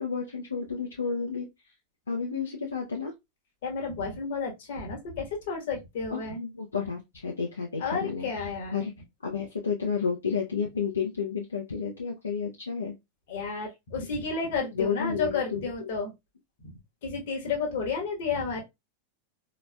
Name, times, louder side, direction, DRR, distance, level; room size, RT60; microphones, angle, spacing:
voice 1, 0.0-1.5 2.1-3.1 6.1-8.3 8.7-8.9 9.2-12.9 14.7-15.7, left 6 dB, 75° left, 0.6 m, -31 dB
voice 2, 3.6-6.4 7.8-8.9 13.3-16.1 16.6-16.7 17.0-18.6, left 4 dB, 55° left, 1.2 m, -31 dB
4.0 x 3.0 x 2.2 m
figure-of-eight pair, 90°, 0 cm